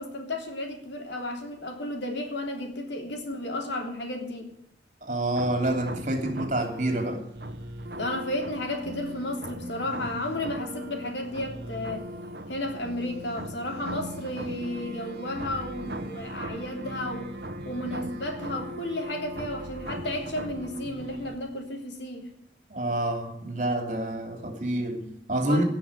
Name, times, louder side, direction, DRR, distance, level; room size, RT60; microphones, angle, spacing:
voice 1, 0.0-4.5 7.9-12.1 12.5-17.3 17.6-22.3 25.5-25.6, left 1 dB, 85° left, 3.3 m, -33 dB
voice 2, 5.0-7.2 22.7-25.6, right 1 dB, 45° right, 3.1 m, -28 dB
sound 1, 5.3-21.3, right 1 dB, 60° right, 1.2 m, -39 dB
17.5 x 6.2 x 9.7 m
head